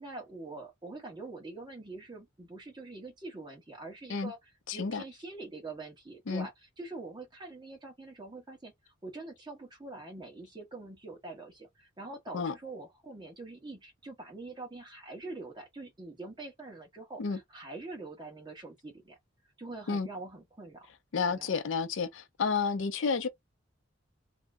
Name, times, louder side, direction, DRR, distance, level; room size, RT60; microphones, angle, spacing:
voice 1, 0.0-19.2 19.6-20.9 21.3-21.5, right 2 dB, 25° right, 1.1 m, -44 dB
voice 2, 4.7-5.0 6.3-6.5 12.3-12.5 17.2-17.4 19.9-20.1 21.1-23.3, left 5 dB, 75° left, 0.5 m, -30 dB
2.6 x 2.1 x 3.5 m
head